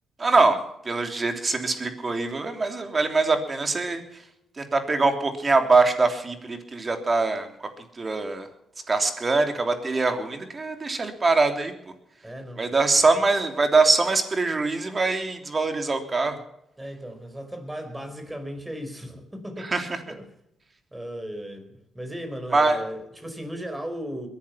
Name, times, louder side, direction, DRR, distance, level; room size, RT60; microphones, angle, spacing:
voice 1, 0.2-0.6 0.8-4.0 4.6-7.5 8.0-8.5 8.9-11.7 12.6-16.4 19.7-20.0 22.5-22.8, right 3 dB, 35° right, 6 dB, 3.2 m, -23 dB
voice 2, 12.2-13.2 16.8-20.3 20.9-24.3, equal, 10° right, 7 dB, 4.9 m, -36 dB
21.5 x 11.0 x 5.8 m, 0.80 s
cardioid pair, 70°, 0 cm